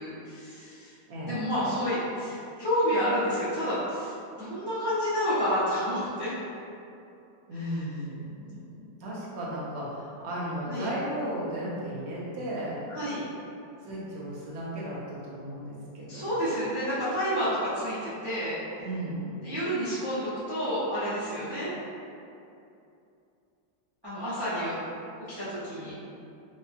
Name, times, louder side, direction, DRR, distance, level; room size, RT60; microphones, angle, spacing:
voice 1, 0.0-0.9 1.2-4.1 4.4-6.3 7.6-7.7 10.7-10.9 12.9-13.2 16.1-18.6 19.4-21.7 24.0-24.8 25.4-26.0, equal, 40° right, -13 dB, 0.3 m, -29 dB
voice 2, 1.1-1.4 7.5-13.0 13.8-16.4 18.8-19.3, right 1 dB, 55° right, -7 dB, 0.7 m, -35 dB
4.1 x 2.5 x 2.5 m, 2.7 s
omnidirectional pair, 2.0 m